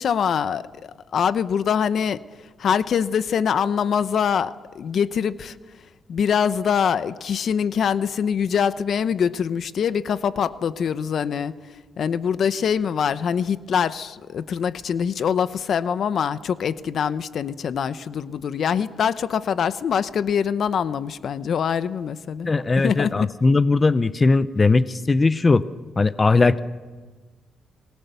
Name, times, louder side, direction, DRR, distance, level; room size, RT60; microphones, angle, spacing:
voice 1, 0.0-2.2 2.6-5.6 6.1-11.5 12.0-23.3, left 7 dB, 60° left, 14 dB, 0.8 m, -24 dB
voice 2, 22.4-25.6 26.0-26.6, left 3 dB, 30° left, 14 dB, 0.7 m, -19 dB
28.0 x 20.0 x 6.9 m, 1.3 s
cardioid pair, 90°, 0 cm